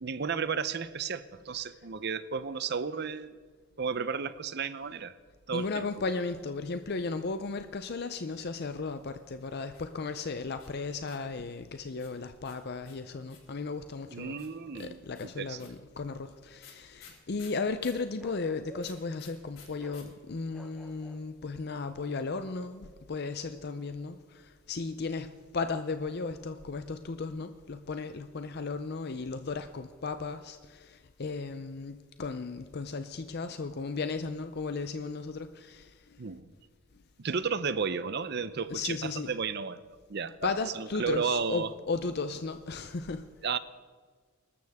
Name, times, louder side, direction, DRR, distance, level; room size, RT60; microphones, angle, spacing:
voice 1, 0.0-3.4 3.8-5.1 5.5-5.8 14.1-15.7 36.2-36.5 37.2-39.8 40.1-40.5 40.7-41.7 43.4-43.6, right 5 dB, 55° right, 14 dB, 0.7 m, -33 dB
voice 2, 5.5-14.5 14.7-36.2 38.7-39.4 40.4-43.2, left 4 dB, 50° left, 9 dB, 0.6 m, -35 dB
sound 1, 9.7-11.4 12.0-13.6 14.4-18.1 18.8-20.0 20.3-20.4 20.6-21.1, left 7 dB, 85° left, 5.3 m, -54 dB
Bark, 18.2-19.1 19.8-20.1 20.5-21.3 22.3-22.6, left 1 dB, 5° right, 1.1 m, -52 dB
24.0 x 13.0 x 3.6 m, 1.6 s
head